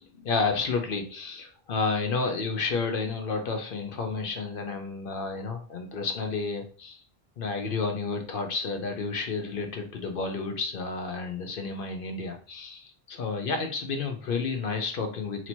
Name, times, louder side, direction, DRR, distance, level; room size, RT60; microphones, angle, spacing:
voice 1, 0.1-7.0 7.4-15.5, left 4 dB, 65° left, 5 dB, 0.8 m, -31 dB
2.9 x 2.8 x 4.2 m, 0.42 s
omnidirectional pair, 1.0 m